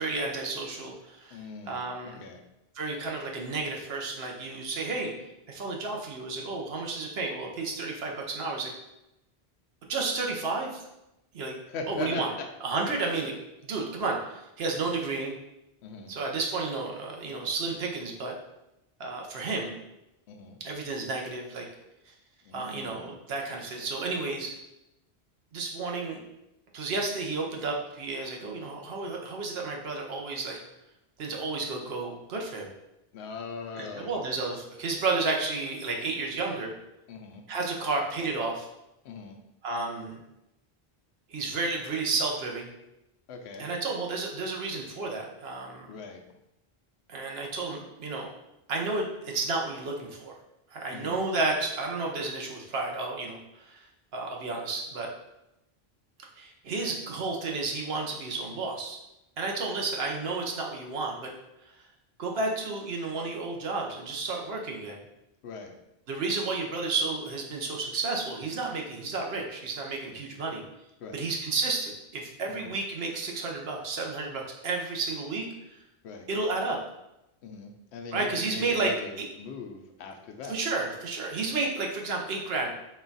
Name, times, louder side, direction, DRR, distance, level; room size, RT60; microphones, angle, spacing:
voice 1, 0.0-1.4 1.7-2.3 2.7-5.1 5.5-8.7 9.9-10.8 11.3-11.5 11.9-12.3 12.6-13.3 13.6-15.3 16.1-18.3 19.0-19.7 20.6-21.6 22.5-24.5 25.5-26.2 26.7-30.6 31.2-32.7 33.8-36.7 37.5-38.7 39.6-40.2 41.3-42.7 43.6-45.9 47.1-48.3 48.7-50.3 50.7-53.9 54.1-55.1 56.4-59.0 59.4-61.3 62.2-65.0 66.1-70.6 71.1-75.5 76.3-76.8 78.1-78.9 80.5-82.7, right 3 dB, 70° right, 0 dB, 1.0 m, -32 dB
voice 2, 1.3-2.4 11.7-12.5 15.8-16.1 20.3-20.6 22.4-23.1 33.1-34.4 37.1-37.4 39.0-39.4 43.3-43.7 45.9-46.2 50.9-51.2 65.4-65.7 71.0-71.3 72.5-72.8 76.0-76.3 77.4-80.6, left 4 dB, 85° left, 4 dB, 0.9 m, -40 dB
4.2 x 2.3 x 3.9 m, 0.90 s
omnidirectional pair, 1.1 m